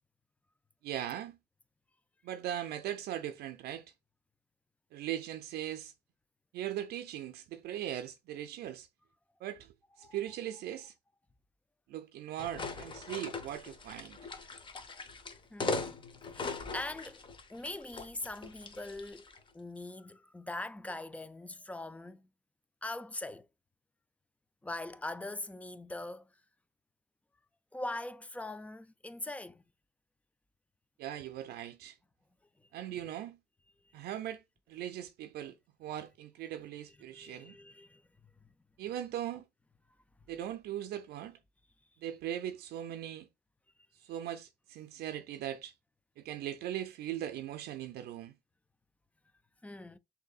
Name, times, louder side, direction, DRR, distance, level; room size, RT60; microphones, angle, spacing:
voice 1, 0.8-1.4 2.2-3.9 4.9-5.9 6.5-8.9 9.4-10.9 11.9-14.2 31.0-32.0 32.7-33.4 33.9-34.4 34.7-37.6 38.8-39.4 40.3-41.4 42.0-43.3 43.9-45.7 46.2-48.3, right 11 dB, 70° right, 0.5 m, -39 dB
sound 1, 12.4-19.4, left 3 dB, 30° left, 0.8 m, -40 dB
voice 2, 15.5-16.0 16.3-17.2 17.5-19.2 19.5-22.3 22.8-23.5 24.6-26.3 27.7-29.6 37.1-38.0 49.6-50.0, left 2 dB, 10° left, 0.3 m, -42 dB
6.3 x 2.7 x 2.3 m
cardioid pair, 110°, 17 cm